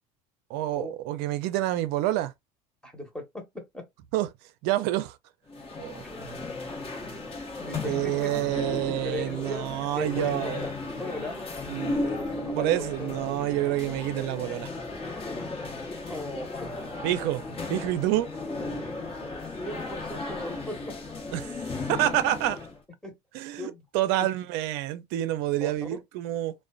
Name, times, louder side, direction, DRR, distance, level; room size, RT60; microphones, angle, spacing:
voice 1, 0.5-2.3 4.1-4.3 4.6-5.2 5.8-6.0 7.8-10.7 11.7-12.1 12.5-14.7 17.0-17.4 17.7-18.3 21.3-21.5 21.9-22.6 23.3-26.5, right 14 dB, 65° right, 0.5 m, -28 dB
voice 2, 2.8-3.9 7.6-8.3 9.0-9.7 10.0-10.7 11.0-11.4 12.0-13.1 16.1-16.9 19.6-21.0 23.0-23.2 23.6-23.8 25.6-25.7, left 1 dB, 5° left, 1.1 m, -37 dB
sound 1, 5.5-22.8, left 2 dB, 30° left, 1.0 m, -35 dB
2.4 x 2.2 x 2.3 m
hypercardioid pair, 85°, 18 cm